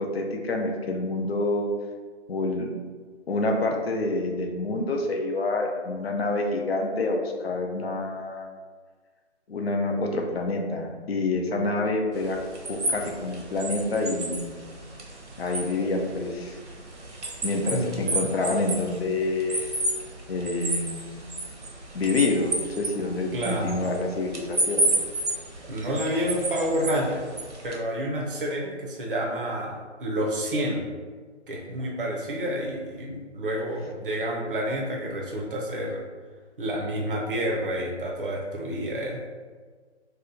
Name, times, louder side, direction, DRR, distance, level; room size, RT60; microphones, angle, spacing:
voice 1, 0.0-1.7 2.3-2.7 3.3-8.5 9.5-12.4 12.7-14.6 15.4-16.6 17.4-19.7 20.3-21.1 21.9-24.9 33.0-33.3, left 2 dB, 60° left, 2 dB, 0.5 m, -27 dB
sound 1, 12.1-27.8, right 2 dB, 75° right, 0.9 m, -32 dB
voice 2, 17.7-18.3 23.3-23.8 25.6-27.2 27.6-30.8 31.5-36.0 36.6-39.2, equal, 50° right, -1 dB, 0.6 m, -29 dB
2.8 x 2.2 x 3.6 m, 1.5 s
figure-of-eight pair, 155°, 35 cm